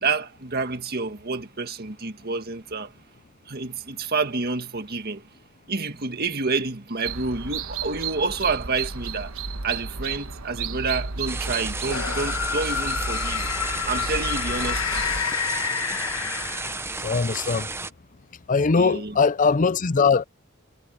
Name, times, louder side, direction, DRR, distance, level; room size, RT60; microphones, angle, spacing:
voice 1, 0.0-2.9 3.5-5.3 5.7-9.3 9.6-13.5 13.8-15.0 18.7-19.2, right 4 dB, 50° right, 1.9 m, -28 dB
sound 1, 7.0-15.2, right 4 dB, 85° right, 1.3 m, -33 dB
sound 2, 11.3-17.9, right 3 dB, 10° right, 0.8 m, -33 dB
sound 3, 11.8-17.1, left 7 dB, 90° left, 1.6 m, -29 dB
voice 2, 17.0-17.7 18.5-20.2, left 4 dB, 40° left, 0.5 m, -21 dB
head